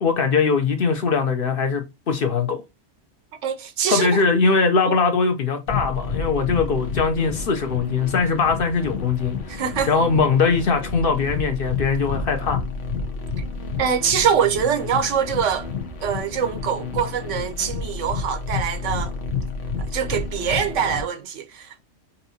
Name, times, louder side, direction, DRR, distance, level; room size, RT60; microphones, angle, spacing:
voice 1, 0.0-2.6 3.9-9.3 9.9-12.6, left 5 dB, 55° left, 0.9 m, -21 dB
voice 2, 3.4-4.1 6.5-6.6 9.5-9.9 13.8-15.7 16.0-19.1 19.9-21.8, right 7 dB, 85° right, 1.1 m, -24 dB
sound 1, 5.7-21.0, left 4 dB, 85° left, 1.2 m, -30 dB
5.5 x 2.6 x 2.7 m
omnidirectional pair, 1.2 m